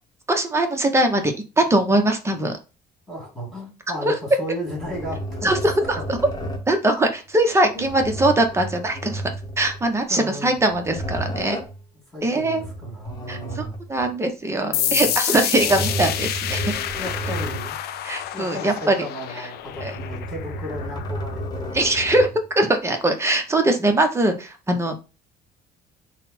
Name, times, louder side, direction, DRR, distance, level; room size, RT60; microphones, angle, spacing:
voice 1, 0.3-2.6 4.1-4.2 5.4-6.2 6.7-9.2 9.6-11.6 12.2-12.6 13.3-13.6 13.9-16.7 18.0-18.9 19.8-19.9 21.7-22.3 22.6-24.9, right 1 dB, 15° right, 4 dB, 0.8 m, -21 dB
voice 2, 3.1-5.5 6.0-6.1 7.7-7.9 10.1-10.8 12.1-13.8 14.6-15.1 15.4-15.9 16.9-17.8 18.3-21.8, equal, ahead, -3 dB, 2.3 m, -34 dB
sound 1, 4.7-6.8 7.8-9.9 10.5-11.8 12.6-14.1 15.3-17.8 18.2-18.3 19.6-22.4, equal, 25° left, 1.1 m, -32 dB
sound 2, 14.7-22.1, left 12 dB, 70° left, 0.4 m, -29 dB
3.8 x 2.2 x 4.1 m, 0.32 s
cardioid pair, 110°, 17 cm